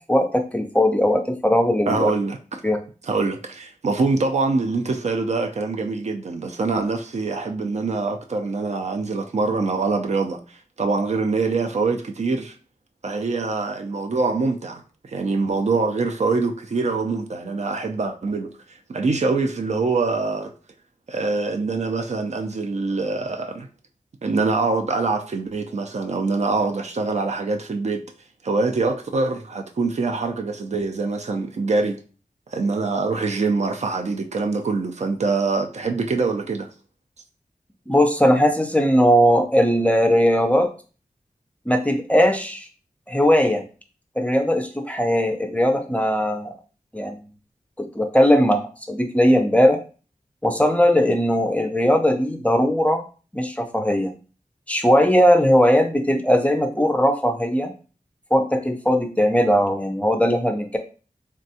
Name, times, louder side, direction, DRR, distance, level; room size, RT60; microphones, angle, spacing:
voice 1, 0.1-2.1 2.6-2.8 37.9-40.7 41.7-42.7 43.1-43.6 44.2-46.5 46.9-47.2 47.8-49.8 50.4-53.0 53.3-54.1 54.7-57.7 58.3-60.8, equal, 10° left, 0.4 m, -19 dB
voice 2, 1.9-2.6 3.1-10.4 10.8-12.5 13.0-18.5 18.9-20.5 21.1-23.7 24.2-28.0 28.4-32.0 32.5-36.7, right 3 dB, 55° right, 0.4 m, -24 dB
3.4 x 2.2 x 2.7 m
wide cardioid pair, 80°, 14 cm